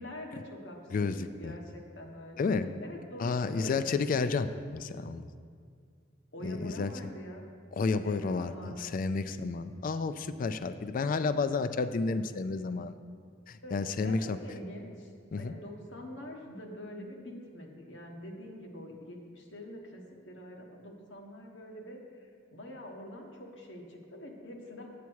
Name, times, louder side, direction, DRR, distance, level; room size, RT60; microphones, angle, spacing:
voice 1, 0.0-1.1 1.4-2.4 2.8-3.9 6.3-7.5 8.0-8.9 13.6-15.1 15.4-24.9, left 1 dB, 80° left, 0 dB, 1.3 m, -45 dB
voice 2, 0.9-1.5 2.4-2.7 3.2-5.3 6.4-6.9 7.8-12.9 13.5-14.4 15.3-15.5, left 4 dB, 45° left, 12 dB, 0.3 m, -31 dB
8.5 x 8.1 x 4.6 m, 2.1 s
head